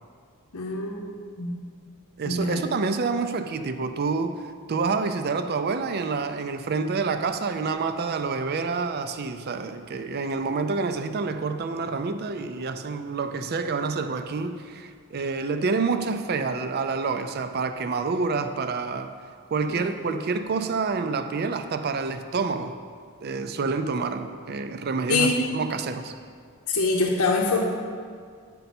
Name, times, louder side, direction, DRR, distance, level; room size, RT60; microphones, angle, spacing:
voice 1, 0.5-1.6 2.2-2.6 19.7-19.9 25.1-25.4 26.7-27.7, left 3 dB, 75° left, 0 dB, 0.7 m, -25 dB
voice 2, 2.2-4.4 4.7-19.1 19.5-22.8 23.2-26.1, right 4 dB, 45° right, 9 dB, 0.4 m, -28 dB
9.0 x 5.4 x 4.2 m, 2.1 s
head